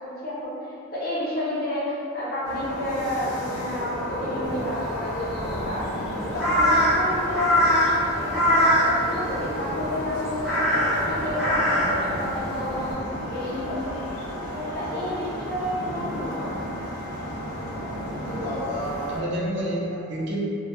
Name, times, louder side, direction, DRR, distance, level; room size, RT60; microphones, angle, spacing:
voice 1, 0.0-5.9 6.3-13.9 14.5-16.6, left 1 dB, 45° left, -9 dB, 0.6 m, -30 dB
sound 1, 2.4-19.2, equal, 85° left, 0.5 m, -33 dB
Crow, 4.4-12.9, equal, ahead, 0.5 m, -24 dB
voice 2, 18.2-20.4, right 1 dB, 55° right, -5 dB, 0.4 m, -30 dB
2.2 x 2.0 x 2.9 m, 2.6 s
head